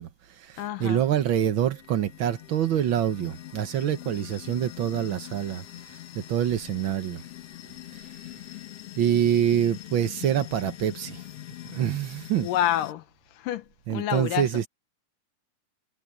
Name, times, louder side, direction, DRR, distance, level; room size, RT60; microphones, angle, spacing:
voice 1, 0.0-7.2 7.9-8.1 9.0-11.2 11.6-12.5 13.9-14.7, right 10 dB, 85° right, 1.1 m, -26 dB
voice 2, 0.6-1.0 12.3-13.0 13.3-14.5, left 12 dB, 90° left, 2.7 m, -28 dB
sound 1, 1.0-12.9, left 15 dB, 60° left, 1.7 m, -43 dB
omnidirectional pair, 3.7 m